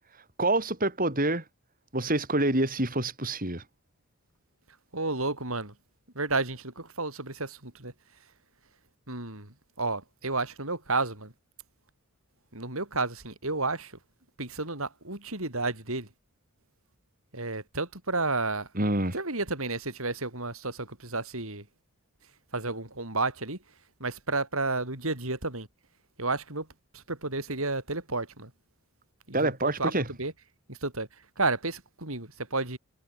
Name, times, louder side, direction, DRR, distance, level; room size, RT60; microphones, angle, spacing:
voice 1, 0.4-1.4 1.9-3.6 18.7-19.1 29.3-30.1, right 2 dB, 40° right, 6.6 m, -26 dB
voice 2, 4.9-5.7 6.2-7.9 9.1-11.3 12.5-13.9 14.4-16.1 17.3-18.7 19.1-21.6 22.5-23.6 24.0-25.7 26.2-26.7 26.9-28.5 29.3-29.9 30.2-30.3 30.7-31.1 31.4-32.8, right 3 dB, 65° right, 5.8 m, -31 dB
head